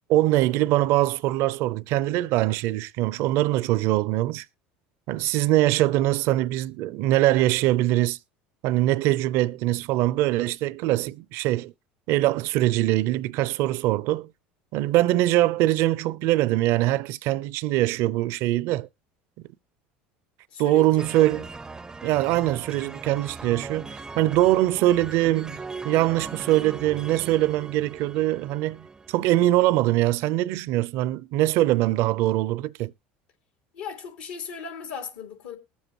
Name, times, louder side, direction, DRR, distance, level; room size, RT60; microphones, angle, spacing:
voice 1, 0.1-4.4 5.1-8.2 8.6-11.7 12.1-14.3 14.7-18.9 20.6-21.5 22.0-32.9, right 15 dB, 65° right, 0.5 m, -23 dB
voice 2, 20.5-21.1 33.7-35.6, left 6 dB, 85° left, 2.9 m, -37 dB
sound 1, 21.0-29.5, right 4 dB, 15° right, 0.5 m, -39 dB
20.5 x 7.1 x 2.9 m
supercardioid pair, 95°, 5 cm